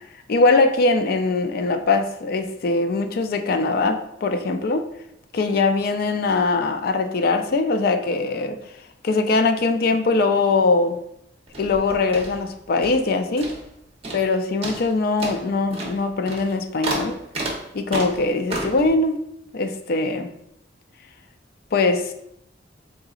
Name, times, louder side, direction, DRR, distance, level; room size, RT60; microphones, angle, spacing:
voice 1, 0.3-4.9 5.3-8.6 9.0-11.0 11.6-13.5 14.1-17.2 17.7-19.2 19.5-20.3 21.7-22.1, left 3 dB, 55° left, 0.4 m, -21 dB
sound 1, 11.5-13.1 13.4-13.8 14.0-14.3 14.6-18.9, right 2 dB, 35° right, 0.9 m, -31 dB
3.8 x 3.8 x 2.4 m
head